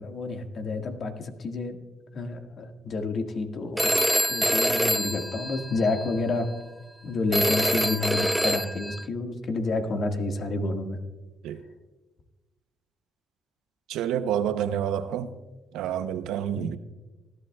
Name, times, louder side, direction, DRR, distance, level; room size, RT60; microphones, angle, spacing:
voice 1, 0.0-1.8 2.1-3.9 4.3-6.5 7.0-11.0 16.5-16.8, left 3 dB, 55° left, 1.6 m, -29 dB
Telephone, 3.8-6.1 7.3-9.0, equal, 5° right, 0.3 m, -25 dB
voice 2, 13.9-15.3 15.7-16.8, right 9 dB, 90° right, 0.6 m, -28 dB
19.0 x 12.0 x 2.3 m
cardioid pair, 80°, 0 cm